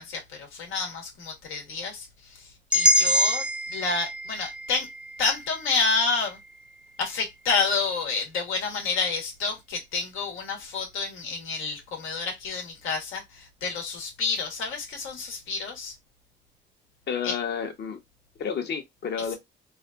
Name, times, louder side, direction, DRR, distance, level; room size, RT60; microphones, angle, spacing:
voice 1, 0.0-4.9 5.2-6.4 7.0-15.9 17.2-17.3 19.2-19.3, left 4 dB, 90° left, 1.4 m, -29 dB
sound 1, 2.7-6.7, equal, 5° right, 0.3 m, -26 dB
voice 2, 17.1-18.0 18.4-19.4, left 7 dB, 60° left, 1.0 m, -30 dB
3.3 x 2.5 x 2.5 m
cardioid pair, 90°, 20 cm